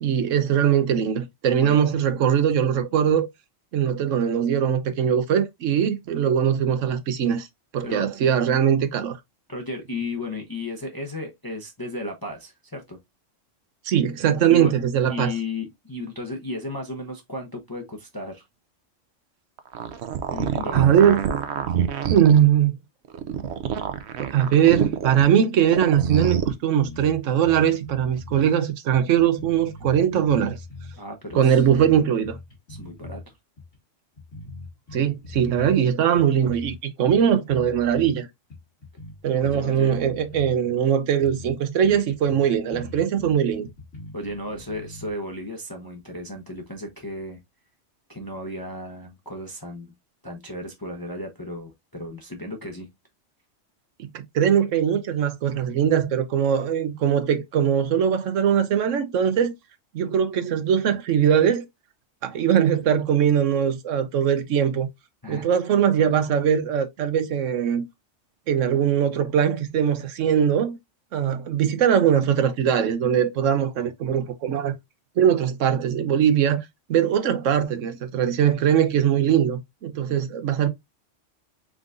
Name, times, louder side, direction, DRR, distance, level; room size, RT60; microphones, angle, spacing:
voice 1, 0.0-3.3 3.7-7.5 7.7-9.2 13.8-15.3 20.7-21.3 22.1-22.7 24.2-30.6 31.3-32.4 34.9-38.3 39.2-43.7 54.0-59.5 59.9-61.6 62.2-64.9 65.3-67.8 68.5-70.8 71.1-74.7 75.2-76.6 76.9-80.7, right 8 dB, 85° right, 1.1 m, -21 dB
voice 2, 9.5-13.0 14.5-14.7 15.1-18.4 20.3-20.9 31.0-31.6 32.7-33.2 39.3-40.0 44.1-47.4 48.1-49.9 50.2-52.9 65.2-65.5, left 2 dB, 20° left, 0.8 m, -34 dB
sound 1, 19.6-22.4 23.1-25.2 25.6-26.5, right 8 dB, 65° right, 0.9 m, -26 dB
sound 2, 25.9-26.2 26.5-26.6 26.8-28.4 28.9-31.0 31.3-33.2 33.6-33.8 34.2-35.8 36.1-36.8 37.0-38.1 38.5-40.6 40.9-41.0 41.2-41.5 41.8-45.1, left 3 dB, 75° left, 2.4 m, -41 dB
4.8 x 3.7 x 2.5 m
omnidirectional pair, 1.3 m